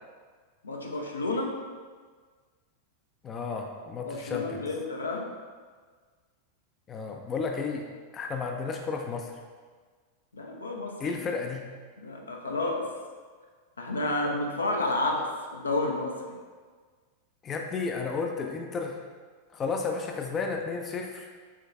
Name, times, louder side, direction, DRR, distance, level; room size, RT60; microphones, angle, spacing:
voice 1, 0.6-1.6 4.1-5.3 10.3-11.2 12.0-12.9 13.8-16.2, left 2 dB, 75° left, 1 dB, 0.6 m, -30 dB
voice 2, 3.2-4.6 6.9-7.8 8.1-9.4 11.0-11.6 17.4-19.0 19.5-21.3, left 4 dB, 25° left, 2 dB, 0.4 m, -32 dB
5.0 x 3.9 x 2.6 m, 1.5 s
figure-of-eight pair, 90°, 0 cm